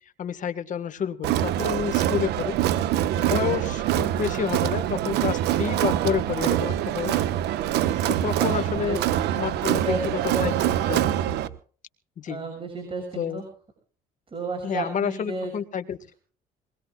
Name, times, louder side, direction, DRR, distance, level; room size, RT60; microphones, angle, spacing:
voice 1, 0.2-2.6 3.2-7.2 8.1-9.0 9.4-10.5 10.9-11.1 12.2-12.4 13.1-13.4 14.6-16.0, left 8 dB, 50° left, 10 dB, 1.7 m, -29 dB
Crowd, 1.2-11.5, right 12 dB, 80° right, 1.2 m, -24 dB
voice 2, 8.3-9.1 9.6-10.8 12.3-13.5 14.3-15.5, right 3 dB, 30° right, 2 dB, 6.6 m, -32 dB
23.0 x 20.5 x 2.4 m, 0.43 s
cardioid pair, 110°, 17 cm